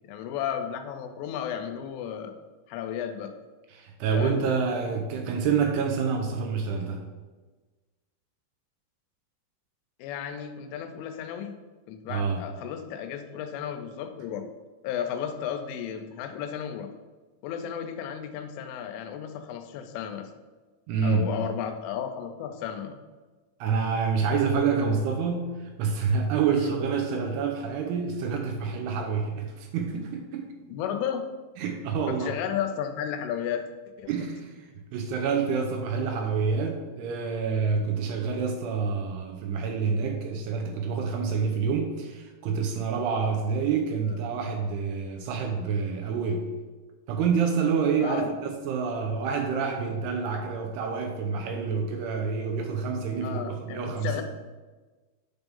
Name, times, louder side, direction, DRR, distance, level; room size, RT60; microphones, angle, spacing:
voice 1, 0.0-2.3 2.7-3.3 4.1-4.5 10.0-11.6 11.9-14.5 14.8-16.9 17.4-20.3 21.0-23.0 26.5-26.7 30.7-31.3 32.1-33.7 34.0-34.1 48.0-48.3 53.2-54.2, left 8 dB, 85° left, 7 dB, 3.2 m, -33 dB
voice 2, 3.7-7.0 12.1-12.4 20.9-21.3 23.6-30.5 31.6-32.3 34.1-46.5 47.1-54.2, right 5 dB, 90° right, 2 dB, 2.3 m, -27 dB
10.5 x 3.5 x 5.3 m, 1.3 s
omnidirectional pair, 5.5 m